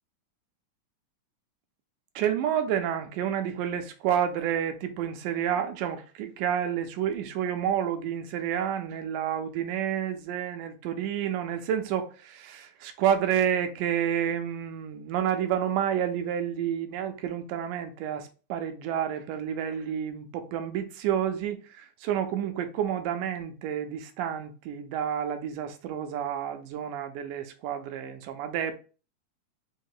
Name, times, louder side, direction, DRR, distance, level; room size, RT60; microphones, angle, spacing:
voice 1, 2.2-28.7, right 9 dB, 80° right, 2.1 m, -29 dB
5.3 x 2.1 x 4.7 m
omnidirectional pair, 3.8 m